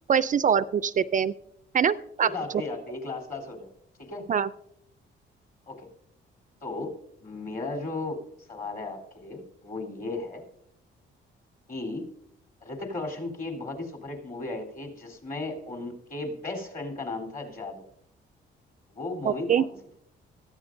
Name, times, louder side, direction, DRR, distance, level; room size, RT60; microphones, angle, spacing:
voice 1, 0.1-1.3 1.7-2.6 4.3-4.5 19.2-19.7, right 7 dB, 40° right, 14 dB, 0.4 m, -24 dB
voice 2, 2.2-3.7 4.0-4.3 5.7-5.9 6.6-8.2 8.5-10.4 11.7-12.1 12.6-17.8 18.9-19.7, left 2 dB, 45° left, 2 dB, 3.6 m, -35 dB
18.5 x 14.0 x 2.6 m, 0.74 s
cardioid pair, 90°, 20 cm